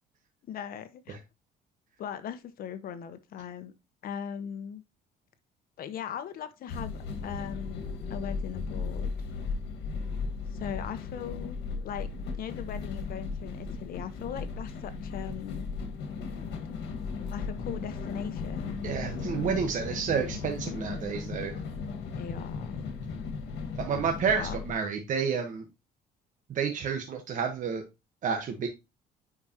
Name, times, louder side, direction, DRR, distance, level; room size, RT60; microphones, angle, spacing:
voice 1, 0.4-1.2 2.0-3.7 4.0-4.8 5.8-9.1 10.5-12.1 12.4-15.7 17.3-18.8 22.2-22.9 24.4-24.6, left 8 dB, 60° left, 1.0 m, -39 dB
sound 1, 6.7-24.7, left 4 dB, 80° left, 1.7 m, -36 dB
voice 2, 18.8-21.6 23.8-25.6 26.5-27.8 28.2-28.7, right 6 dB, 50° right, 1.3 m, -30 dB
9.6 x 5.0 x 2.9 m
cardioid pair, 110°, 17 cm